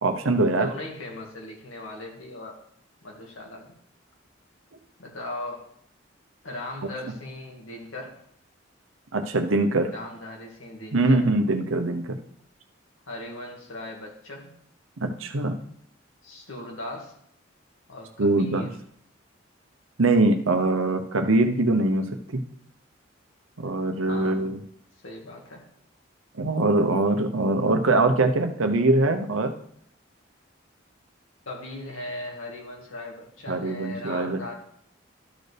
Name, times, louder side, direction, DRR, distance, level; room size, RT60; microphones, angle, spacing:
voice 1, 0.0-0.7 9.1-9.9 10.9-12.2 15.0-15.5 18.2-18.7 20.0-22.1 22.3-22.4 23.6-24.6 26.4-29.5 33.5-34.4, right 2 dB, 85° right, 6 dB, 0.9 m, -22 dB
voice 2, 0.5-2.6 3.0-3.7 5.0-5.7 6.4-8.1 9.9-11.3 13.1-14.5 16.2-17.1 17.9-18.8 24.1-24.5 25.0-25.7 31.5-34.5, left 2 dB, 90° left, 0 dB, 2.1 m, -38 dB
12.5 x 6.6 x 3.4 m, 0.66 s
head